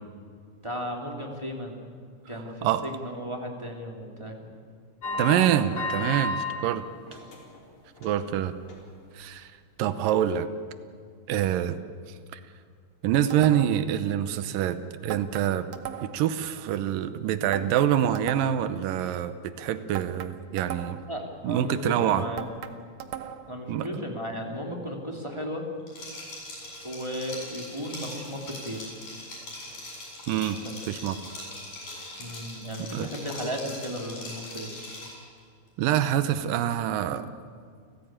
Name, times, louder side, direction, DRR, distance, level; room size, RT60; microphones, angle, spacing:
voice 1, 0.6-1.8 2.3-4.5 21.1-22.5 23.5-25.6 26.8-28.9 30.6-30.8 32.2-34.7, equal, 10° right, 1 dB, 2.4 m, -35 dB
sound 1, 5.0-6.6 7.0-7.6 8.0-8.2 8.7-8.8, left 2 dB, 40° left, 5.0 m, -32 dB
voice 2, 5.2-6.8 8.0-8.5 9.1-9.5 9.8-10.5 11.3-11.8 12.3-12.4 13.0-15.7 16.0-21.0 21.4-22.2 23.7-23.9 30.3-30.6 30.9-31.2 32.9-33.1 35.8-37.3, right 10 dB, 90° right, 12 dB, 2.6 m, -26 dB
sound 2, 13.3-13.9 15.1-16.3 17.5-18.7 19.9-21.2 22.4-23.6, right 10 dB, 65° right, 2.0 m, -38 dB
Liquid, 25.9-35.2, left 1 dB, 85° left, 9.5 m, -41 dB
29.5 x 15.5 x 8.9 m, 2.1 s
omnidirectional pair, 3.8 m